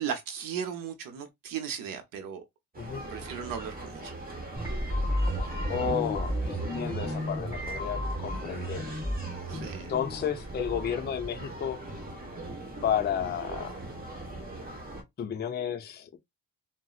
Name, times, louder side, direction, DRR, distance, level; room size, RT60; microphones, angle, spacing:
voice 1, 0.0-2.4 3.1-4.1 9.5-9.9, right 8 dB, 75° right, 0.7 m, -36 dB
sound 1, 2.7-15.0, right 1 dB, 25° right, 1.2 m, -41 dB
sound 2, 4.6-11.4, equal, 5° right, 2.0 m, -33 dB
voice 2, 5.7-8.9 9.5-11.8 12.8-13.7 15.2-16.2, left 8 dB, 30° left, 0.5 m, -32 dB
3.8 x 2.0 x 2.4 m
cardioid pair, 110°, 34 cm